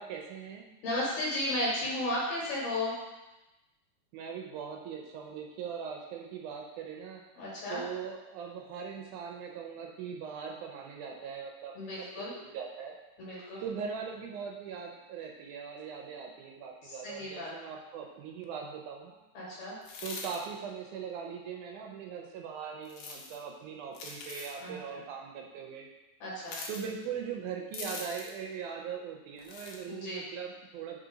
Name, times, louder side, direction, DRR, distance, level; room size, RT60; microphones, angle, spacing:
voice 1, 0.0-0.7 4.1-7.2 7.7-13.0 13.6-19.2 20.0-25.9 26.7-31.0, right 6 dB, 85° right, 1 dB, 2.1 m, -40 dB
voice 2, 0.8-3.0 7.3-7.8 11.7-12.3 13.2-13.7 16.8-17.5 19.3-19.8 24.6-24.8 26.2-26.6 29.9-30.2, left 1 dB, 65° left, -7 dB, 2.7 m, -34 dB
sound 1, 19.8-20.4 22.9-23.4 23.9-24.6 26.4-26.8 27.7-28.4 29.4-29.8, left 3 dB, 85° left, 2.4 m, -42 dB
5.1 x 3.8 x 5.0 m, 1.0 s
omnidirectional pair, 3.5 m